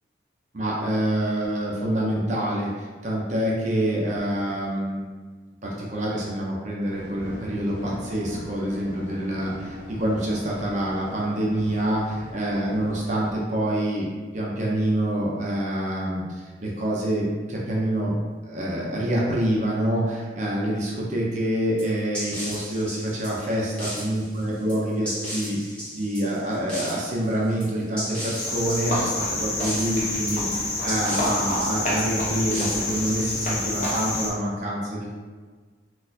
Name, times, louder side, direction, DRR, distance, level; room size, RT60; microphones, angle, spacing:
voice 1, 0.5-5.1 5.6-14.1 14.3-18.1 18.4-35.2, right 1 dB, 40° right, -4 dB, 0.5 m, -26 dB
sound 1, 6.9-13.3, equal, 90° left, 1.0 m, -40 dB
sound 2, 21.8-34.0, equal, 5° left, 1.0 m, -36 dB
Cricket, 28.4-34.3, left 2 dB, 40° left, 0.8 m, -27 dB
4.0 x 2.4 x 2.6 m, 1.4 s
head